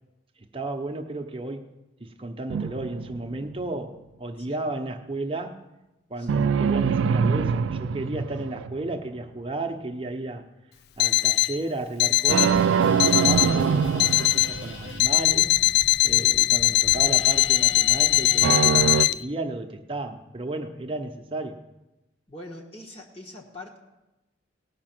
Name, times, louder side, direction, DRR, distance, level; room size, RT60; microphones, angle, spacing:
voice 1, 0.5-1.7 2.0-5.6 6.1-10.4 11.0-15.5 16.0-21.6, right 2 dB, 30° right, 4 dB, 0.9 m, -33 dB
sound 1, 2.5-3.7 6.3-9.0 12.3-15.0 18.4-19.1, right 6 dB, 80° right, 0.3 m, -24 dB
Alarm, 11.0-11.6 12.0-12.6 13.0-13.6 14.0-14.6 15.0-19.1, left 18 dB, 55° left, 0.3 m, -21 dB
sound 2, 12.3-18.7, left 2 dB, 75° left, 1.6 m, -40 dB
voice 2, 22.3-23.8, left 1 dB, 30° left, -1 dB, 1.3 m, -43 dB
18.0 x 5.9 x 6.0 m, 0.99 s
head